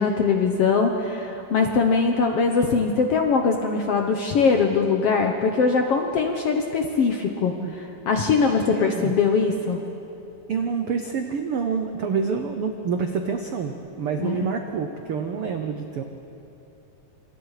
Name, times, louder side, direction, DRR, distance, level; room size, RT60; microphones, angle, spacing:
voice 1, 0.0-7.5 8.1-9.8 14.2-14.5, left 5 dB, 65° left, 3 dB, 1.5 m, -21 dB
voice 2, 8.4-9.1 10.5-16.0, right 5 dB, 85° right, 5 dB, 1.2 m, -27 dB
27.0 x 27.0 x 5.0 m, 2.9 s
omnidirectional pair, 4.1 m